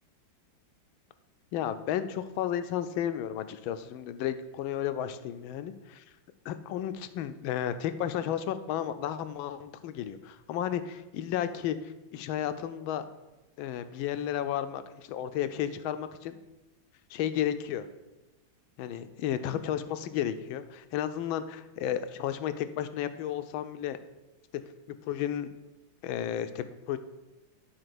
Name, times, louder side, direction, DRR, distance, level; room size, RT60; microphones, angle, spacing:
voice 1, 1.5-6.0 6.4-13.0 13.6-16.4 17.1-17.9 18.8-24.0 24.9-25.5 26.0-27.0, left 10 dB, 85° left, 11 dB, 1.4 m, -33 dB
9.6 x 4.2 x 6.1 m, 1.1 s
omnidirectional pair, 2.2 m